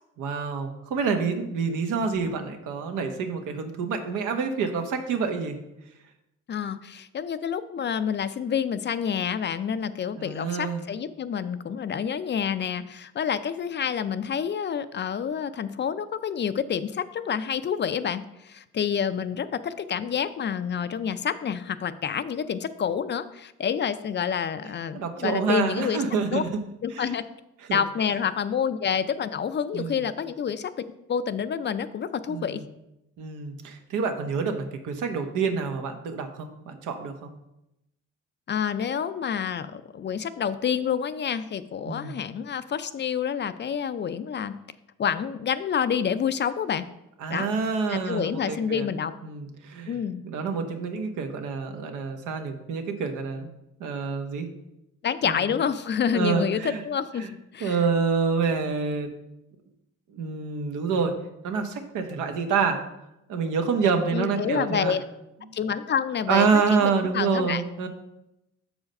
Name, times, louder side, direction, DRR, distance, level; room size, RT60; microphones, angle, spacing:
voice 1, 0.2-5.6 10.2-10.9 24.9-26.5 26.9-27.1 27.7-27.8 29.7-30.0 32.3-32.6 33.2-37.3 41.8-42.2 47.2-48.9 49.2-53.5 53.8-54.5 55.2-55.6 56.1-56.8 57.2-57.3 57.6-59.1 60.1-61.1 61.4-62.8 63.3-64.9 65.5-65.6 66.3-67.9, right 5 dB, 80° right, 6 dB, 1.0 m, -27 dB
voice 2, 6.5-26.0 26.3-26.4 26.8-27.2 27.7-32.6 38.5-44.6 45.0-46.9 47.3-47.5 47.9-49.1 49.9-50.2 55.0-57.8 64.1-65.0 65.5-67.6, left 7 dB, 35° left, 13 dB, 0.4 m, -28 dB
6.3 x 4.8 x 5.2 m, 0.88 s
cardioid pair, 90°, 30 cm